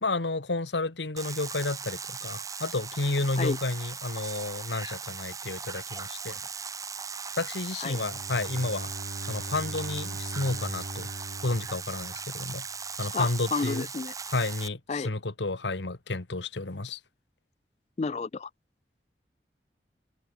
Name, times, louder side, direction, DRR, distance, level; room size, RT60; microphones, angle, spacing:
voice 1, 0.0-6.4 7.4-8.9 9.3-11.1 11.4-12.6 13.0-13.9 14.3-17.0, left 2 dB, 90° left, 1.5 m, -31 dB
sound 1, 1.2-14.7, right 6 dB, 20° right, 1.3 m, -38 dB
Bowed string instrument, 7.9-12.7, right 1 dB, 75° right, 2.5 m, -41 dB
voice 2, 13.1-14.1 14.9-15.1 18.0-18.5, left 4 dB, 40° left, 0.4 m, -31 dB
head